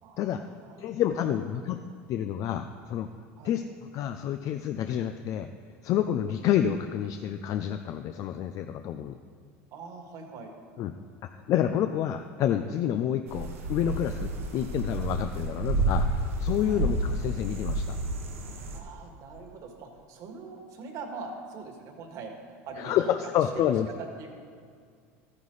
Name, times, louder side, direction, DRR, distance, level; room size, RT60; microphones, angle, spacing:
voice 1, 0.0-1.0 3.4-3.5 9.7-10.5 16.6-16.9 18.7-23.1 23.5-24.3, right 4 dB, 55° right, 3 dB, 2.0 m, -43 dB
voice 2, 0.8-1.8 2.1-3.1 3.4-5.5 5.8-9.2 10.8-10.9 11.5-18.0 22.8-23.9, left 10 dB, 50° left, 8 dB, 0.5 m, -28 dB
sound 1, 13.3-18.8, right 2 dB, 90° right, 1.5 m, -30 dB
13.5 x 9.8 x 4.1 m, 2.1 s
hypercardioid pair, 95°, 7 cm